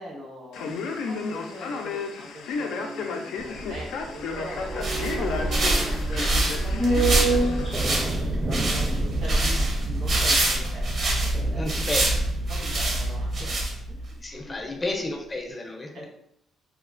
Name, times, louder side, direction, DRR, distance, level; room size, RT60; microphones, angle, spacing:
voice 1, 0.0-4.7 5.1-8.1 8.5-11.6 12.5-13.6 13.9-14.8 15.9-16.1, left 1 dB, 75° right, -4 dB, 1.2 m, -41 dB
Male speech man speaking, 0.5-7.8, left 4 dB, 85° left, 0.3 m, -33 dB
sound 1, 3.4-13.8 14.1-14.2, right 2 dB, 25° right, 0.5 m, -30 dB
sound 2, 4.6-14.1, right 1 dB, 60° right, 0.7 m, -25 dB
voice 2, 11.5-12.0 14.2-16.0, left 2 dB, 25° left, 1 dB, 0.5 m, -31 dB
3.1 x 2.0 x 2.4 m, 0.74 s
cardioid pair, 90°, 0 cm